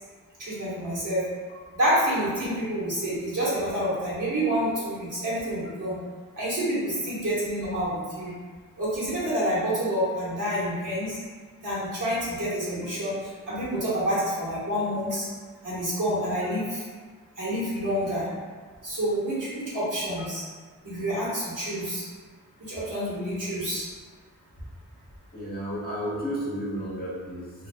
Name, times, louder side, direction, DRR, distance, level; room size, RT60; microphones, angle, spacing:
voice 1, 0.4-1.3 1.7-6.0 6.4-8.3 8.8-11.2 11.6-13.1 13.5-15.3 15.6-16.8 17.4-18.3 18.8-20.4 20.8-22.0 22.6-23.9, equal, 60° right, -9 dB, 1.4 m, -28 dB
voice 2, 25.3-27.7, equal, 25° left, -8 dB, 1.1 m, -32 dB
3.3 x 2.3 x 2.2 m, 1.5 s
cardioid pair, 45°, 36 cm